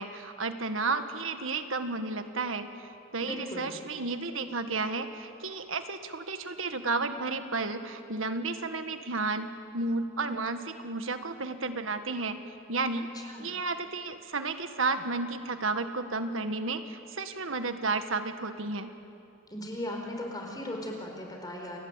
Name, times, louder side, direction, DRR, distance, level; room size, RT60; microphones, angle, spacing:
voice 1, 0.0-9.5 9.7-12.4 12.7-18.9, right 3 dB, 80° right, 8 dB, 1.7 m, -32 dB
voice 2, 3.2-3.7 13.2-13.5 19.5-21.8, left 1 dB, 20° left, 1 dB, 4.6 m, -37 dB
29.5 x 21.0 x 9.1 m, 2.6 s
head